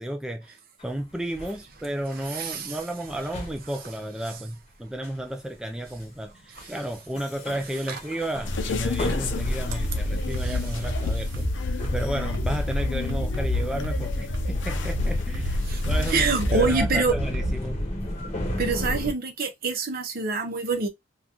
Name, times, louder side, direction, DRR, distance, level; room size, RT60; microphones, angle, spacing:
voice 1, 0.0-11.5 11.9-17.8, right 1 dB, 5° right, 0.3 m, -33 dB
sound 1, 0.8-1.6 2.0-2.4 3.1-3.9 5.0-5.3 5.7-6.3 6.6-6.9 7.1-11.2 11.8-19.1, left 1 dB, 35° left, 1.0 m, -35 dB
voice 2, 2.2-2.8 6.5-6.7 7.9-8.0 10.3-10.6 15.6-17.1 18.6-20.9, right 4 dB, 50° right, 0.7 m, -26 dB
sound 2, 8.4-16.8, left 2 dB, 75° left, 0.6 m, -28 dB
sound 3, 9.8-17.7, equal, 85° right, 0.9 m, -31 dB
3.6 x 2.3 x 2.9 m
head